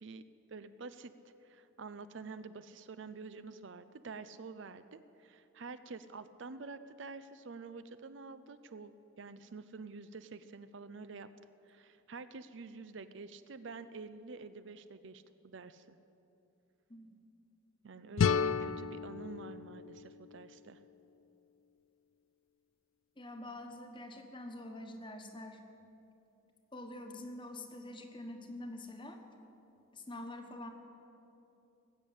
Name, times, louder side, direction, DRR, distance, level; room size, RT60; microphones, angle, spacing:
voice 1, 0.0-11.3 11.7-16.0 17.8-20.8, right 4 dB, 60° right, 12 dB, 0.5 m, -48 dB
sound 1, 18.2-21.1, left 6 dB, 70° left, 0.4 m, -33 dB
voice 2, 23.2-25.6 26.7-29.2 29.9-30.7, left 1 dB, 25° left, 5 dB, 1.3 m, -46 dB
19.5 x 8.3 x 8.7 m, 2.8 s
head